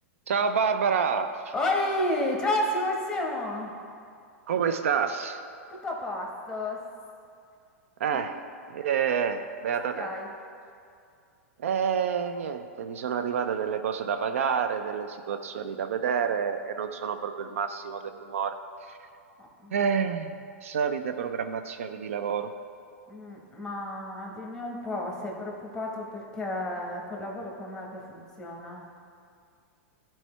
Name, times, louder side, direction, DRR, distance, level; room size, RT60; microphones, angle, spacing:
voice 1, 0.3-1.5 4.5-5.4 8.0-8.4 8.7-10.1 11.6-18.6 18.9-19.0 19.7-22.5, right 7 dB, 75° right, 9 dB, 0.4 m, -28 dB
voice 2, 1.5-3.7 5.7-6.8 8.1-8.2 9.8-10.3 19.4-19.8 23.1-28.9, left 1 dB, 10° left, 0 dB, 1.4 m, -31 dB
12.0 x 4.4 x 3.3 m, 2.4 s
hypercardioid pair, 110°, 7 cm